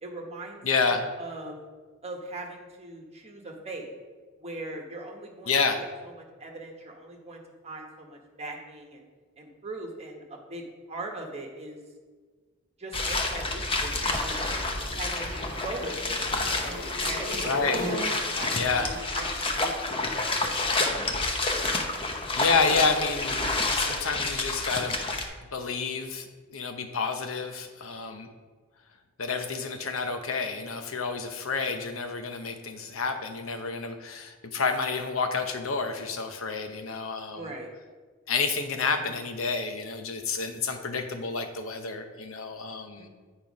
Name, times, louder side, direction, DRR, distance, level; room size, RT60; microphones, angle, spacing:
voice 1, 0.0-1.6 2.0-3.9 4.4-5.5 6.4-9.0 9.4-11.8 12.8-14.5 15.0-17.3 17.9-18.9 19.1-20.7 22.7-22.9 37.3-37.7 43.0-43.1, right 2 dB, 30° right, 1 dB, 1.1 m, -40 dB
voice 2, 0.6-1.0 5.5-5.8 17.4-17.9 18.5-18.9 22.4-23.4 23.8-25.0 25.5-28.3 29.2-37.4 38.3-43.1, left 4 dB, 80° left, 6 dB, 0.9 m, -29 dB
sound 1, 12.9-25.2, left 2 dB, 25° left, 0.8 m, -29 dB
sound 2, 13.8-19.0, equal, 60° left, 2.4 m, -38 dB
9.0 x 4.5 x 5.2 m, 1.4 s
head